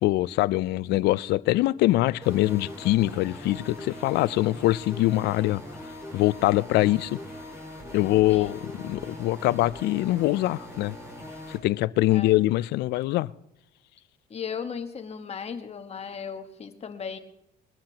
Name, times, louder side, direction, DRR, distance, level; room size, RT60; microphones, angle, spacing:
voice 1, 0.0-5.6 6.1-7.2 7.9-11.0 11.5-13.3, left 17 dB, 80° left, 0.4 m, -23 dB
sound 1, 2.2-11.6, left 1 dB, 15° right, 5.1 m, -41 dB
voice 2, 14.3-17.2, left 6 dB, 40° left, 1.3 m, -36 dB
21.5 x 13.5 x 2.9 m
cardioid pair, 110°, 17 cm